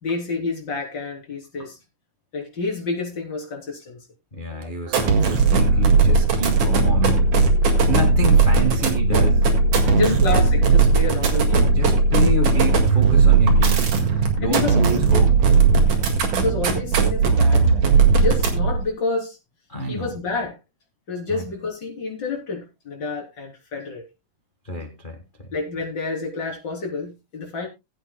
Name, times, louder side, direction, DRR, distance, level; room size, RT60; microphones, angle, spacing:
voice 1, 0.0-1.8 2.3-4.0 4.5-4.7 9.9-12.1 14.4-14.8 16.3-17.8 18.2-19.4 19.8-20.6 21.1-24.1 25.5-27.7, left 3 dB, 35° left, 3.9 m, -29 dB
voice 2, 4.3-7.3 7.9-9.5 9.8-10.2 11.1-11.2 11.7-13.9 14.4-15.4 19.7-20.1 21.3-21.4 24.7-25.2, equal, 55° left, 0.5 m, -27 dB
sound 1, 4.9-18.8, right 4 dB, 85° right, 3.4 m, -17 dB
20.0 x 8.6 x 2.2 m
omnidirectional pair, 3.5 m